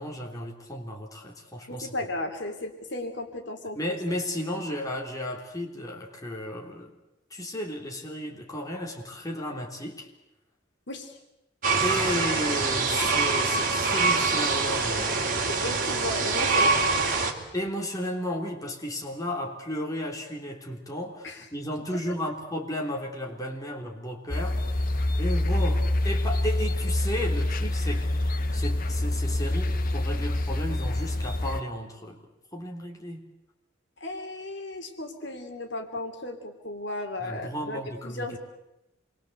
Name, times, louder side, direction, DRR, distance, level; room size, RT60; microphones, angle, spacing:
voice 1, 0.0-1.9 3.8-6.9 7.3-10.1 11.8-15.2 17.5-24.6 25.2-28.1 28.5-32.2 32.5-33.2 37.2-38.3, left 1 dB, 20° left, 0 dB, 3.6 m, -33 dB
voice 2, 1.7-3.8 10.9-11.2 15.5-17.5 21.2-21.4 34.0-38.4, left 1 dB, 65° left, 5 dB, 3.2 m, -35 dB
sound 1, 11.6-17.3, right 4 dB, 45° right, 3.1 m, -25 dB
sound 2, 24.3-31.6, left 1 dB, 45° left, 1.1 m, -26 dB
27.5 x 22.5 x 8.0 m, 0.90 s
head